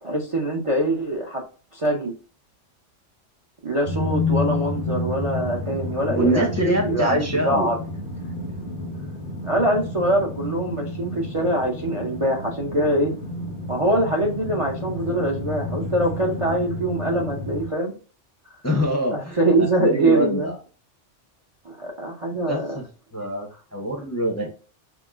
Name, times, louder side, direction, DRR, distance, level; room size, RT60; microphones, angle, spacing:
voice 1, 0.0-1.4 1.7-2.1 3.6-7.8 9.5-13.1 13.7-17.9 19.1-20.5 21.6-22.8, right 1 dB, 35° right, 0 dB, 0.6 m, -23 dB
sound 1, 3.8-17.7, left 2 dB, 80° right, 2.3 m, -30 dB
voice 2, 6.1-7.7 18.6-19.4 19.8-20.5 22.5-22.9 23.1-24.5, equal, 15° left, 0 dB, 0.7 m, -24 dB
5.9 x 2.0 x 2.4 m, 0.38 s
omnidirectional pair, 1.2 m